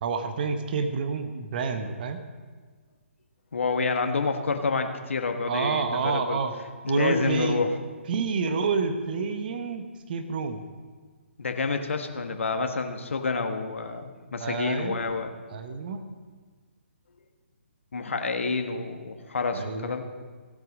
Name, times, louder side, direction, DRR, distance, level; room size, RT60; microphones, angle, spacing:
voice 1, 0.0-2.2 5.5-6.5 6.9-7.7 8.1-10.6 14.4-15.0 15.5-16.0 19.5-19.9, right 5 dB, 45° right, 8 dB, 1.1 m, -28 dB
voice 2, 3.5-6.4 6.8-7.7 11.4-15.3 17.9-20.0, left 4 dB, 70° left, 6 dB, 1.2 m, -28 dB
16.0 x 7.9 x 5.1 m, 1.4 s
figure-of-eight pair, 140°, 7 cm